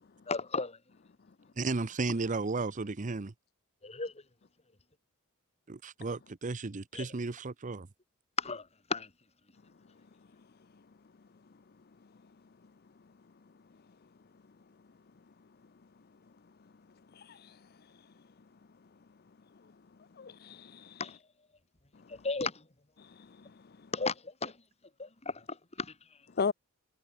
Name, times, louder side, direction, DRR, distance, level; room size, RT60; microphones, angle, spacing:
voice 1, 0.3-0.8 3.8-4.1 6.9-7.1 8.4-9.1 21.0-21.2 22.1-22.7 23.9-24.6 25.0-25.9, left 4 dB, 30° left, 2.3 m, -35 dB
voice 2, 1.6-3.3 5.7-7.9, right 3 dB, 35° right, 0.7 m, -34 dB
voice 3, 17.1-17.7 19.6-19.7 20.1-21.1 21.9-22.2 23.0-23.9 26.3-26.5, left 5 dB, 45° left, 0.6 m, -38 dB
head